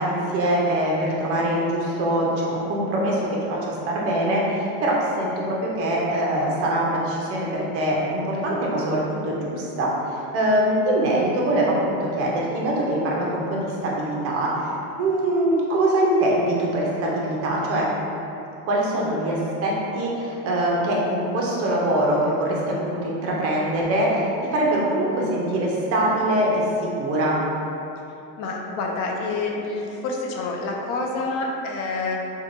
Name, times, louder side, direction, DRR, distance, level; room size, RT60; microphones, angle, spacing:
voice 1, 0.0-14.7 15.0-17.8 18.7-24.3 24.5-26.6 27.0-27.4, right 1 dB, 30° right, -3 dB, 0.5 m, -23 dB
voice 2, 28.4-32.2, left 3 dB, 55° left, 0 dB, 0.5 m, -27 dB
3.0 x 2.3 x 2.5 m, 2.9 s
supercardioid pair, 135°, 47 cm